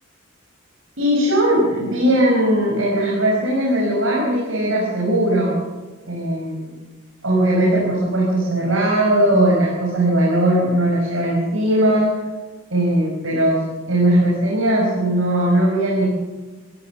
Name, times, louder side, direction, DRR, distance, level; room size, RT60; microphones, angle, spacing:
voice 1, 1.0-5.6 6.1-6.7 7.2-12.1 12.7-13.6 13.9-16.1, right 1 dB, 70° right, -3 dB, 5.7 m, -18 dB
24.5 x 16.0 x 7.3 m, 1.3 s
head